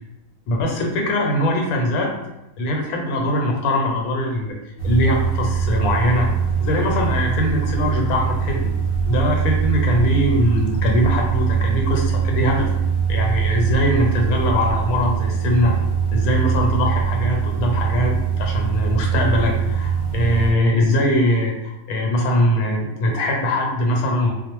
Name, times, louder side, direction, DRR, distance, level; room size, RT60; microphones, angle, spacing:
voice 1, 0.5-2.1 2.6-4.6 4.8-6.3 6.6-8.7 9.1-12.7 13.1-15.8 16.1-24.3, left 1 dB, 85° left, 1 dB, 1.1 m, -21 dB
sound 1, 4.8-20.5, right 7 dB, 50° left, 0.8 m, -22 dB
2.3 x 2.0 x 3.0 m, 0.91 s
omnidirectional pair, 1.5 m